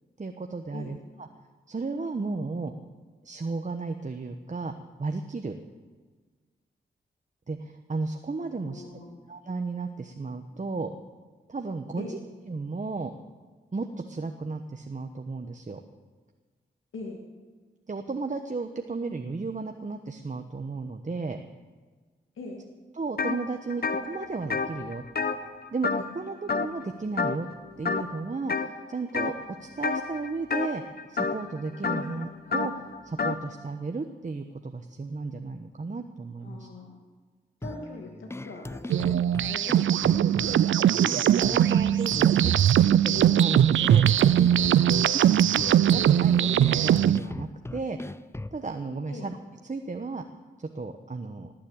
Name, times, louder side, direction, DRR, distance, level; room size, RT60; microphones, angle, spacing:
voice 1, 0.2-1.3 1.7-2.7 3.2-4.7 5.0-5.6 7.5-8.8 9.3-10.9 11.5-12.2 12.5-13.1 13.7-15.8 17.9-21.4 23.0-25.0 25.7-27.5 27.8-29.3 29.6-30.8 31.1-36.7 39.1-39.2 41.0-42.5 42.9-43.1 43.4-44.1 44.4-44.5 45.7-48.0 48.5-49.4 49.6-50.2 50.6-51.5, right 3 dB, 40° right, 6 dB, 1.1 m, -34 dB
voice 2, 8.5-9.2 12.0-12.2 16.9-17.2 22.3-22.6 32.0-32.2 36.4-37.0 37.6-39.2 39.5-40.8 43.8-45.2 49.1-49.3, left 3 dB, 85° left, -1 dB, 2.1 m, -42 dB
sound 1, 23.2-23.4 23.7-26.2 26.5-26.9 27.2-27.5 27.8-28.7 29.1-29.5 29.8-33.4, left 4 dB, 50° left, 1.2 m, -29 dB
sound 2, 37.6-48.6, left 2 dB, 15° left, 0.6 m, -38 dB
sound 3, 38.9-47.2, right 10 dB, 75° right, 0.4 m, -21 dB
18.5 x 7.6 x 8.8 m, 1.4 s
cardioid pair, 40°, 20 cm